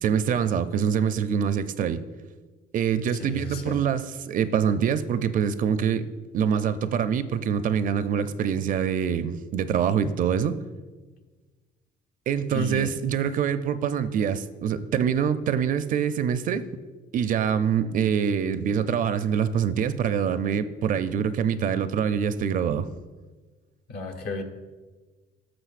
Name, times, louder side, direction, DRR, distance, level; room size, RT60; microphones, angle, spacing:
voice 1, 0.0-2.0 2.7-10.6 12.3-16.7 17.1-22.9, right 8 dB, 55° right, 12 dB, 0.5 m, -25 dB
voice 2, 3.2-3.8 12.5-12.9 23.9-24.4, left 3 dB, 65° left, 5 dB, 1.2 m, -33 dB
14.0 x 6.2 x 2.5 m, 1.3 s
cardioid pair, 110°, 17 cm